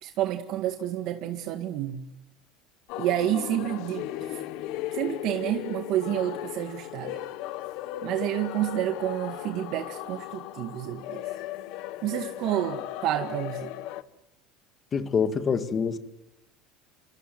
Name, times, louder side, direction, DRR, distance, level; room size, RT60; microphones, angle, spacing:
voice 1, 0.0-2.0 3.0-4.4 4.9-7.2 8.0-11.2 12.0-13.7, right 12 dB, 50° right, 5 dB, 1.9 m, -29 dB
sound 1, 2.9-14.0, left 14 dB, 60° left, 1.2 m, -37 dB
voice 2, 14.9-16.0, left 6 dB, 25° left, 8 dB, 2.0 m, -25 dB
28.5 x 26.5 x 7.8 m, 0.94 s
cardioid pair, 160°, 0 cm